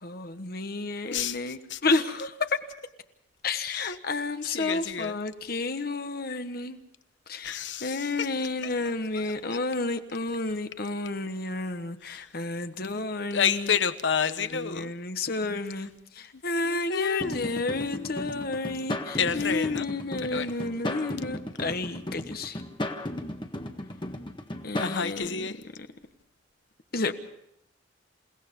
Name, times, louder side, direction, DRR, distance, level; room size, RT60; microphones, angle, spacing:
voice 1, 0.0-2.5 3.4-6.8 7.3-13.7 14.5-22.6 24.6-25.4 26.9-27.1, left 3 dB, 50° left, 1.3 m, -31 dB
voice 2, 1.1-1.8 3.7-4.0 4.4-5.2 7.4-9.6 12.0-12.3 12.9-13.0 13.3-14.9 16.3-18.5 19.1-19.9 20.2-20.5 24.8-25.6, left 7 dB, 70° left, 1.1 m, -31 dB
sound 1, 17.2-25.0, left 1 dB, 25° left, 1.5 m, -35 dB
28.5 x 18.0 x 5.4 m
head